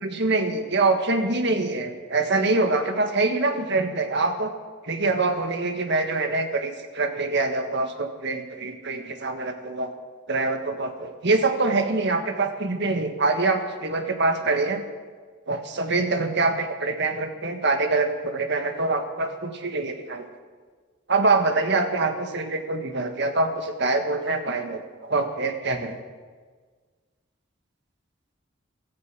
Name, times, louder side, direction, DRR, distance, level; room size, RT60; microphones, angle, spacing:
voice 1, 0.0-4.5 4.8-9.9 10.3-14.8 15.5-20.2 21.1-26.0, right 3 dB, 60° right, 6 dB, 1.6 m, -25 dB
16.5 x 14.0 x 6.1 m, 1.5 s
head